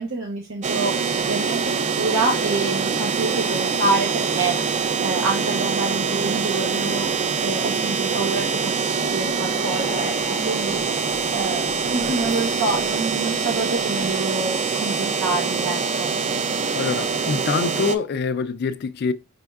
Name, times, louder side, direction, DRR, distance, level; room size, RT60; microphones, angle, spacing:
voice 1, 0.0-4.6 5.0-7.1 7.4-10.8 11.3-16.1, right 3 dB, 70° right, 0.9 m, -27 dB
sound 1, 0.6-18.0, right 5 dB, 35° right, 0.4 m, -24 dB
voice 2, 16.7-19.1, left 5 dB, 50° left, 0.4 m, -25 dB
5.3 x 3.5 x 2.3 m
head